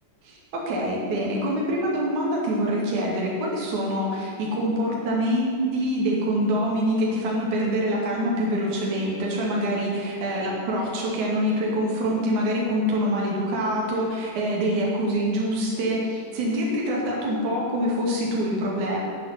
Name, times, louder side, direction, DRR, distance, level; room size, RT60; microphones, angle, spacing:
voice 1, 0.2-19.0, equal, 70° right, -3 dB, 3.8 m, -25 dB
11.0 x 9.6 x 9.7 m, 2.3 s
omnidirectional pair, 3.6 m